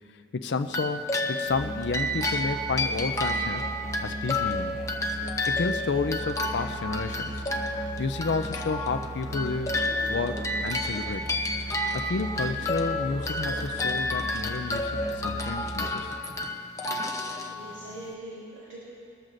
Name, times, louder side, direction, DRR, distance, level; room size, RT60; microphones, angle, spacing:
voice 1, 0.1-3.7 4.0-4.8 5.5-7.6 8.0-9.8 10.1-11.3 11.9-16.2, left 4 dB, 65° left, 8 dB, 0.5 m, -31 dB
sound 1, 0.7-18.1, left 1 dB, 15° left, 0.8 m, -31 dB
Musical instrument, 1.4-16.2, right 1 dB, 40° right, 2.4 m, -37 dB
voice 2, 17.5-18.8, right 1 dB, 90° right, -8 dB, 3.1 m, -42 dB
22.5 x 14.0 x 2.6 m, 2.7 s
head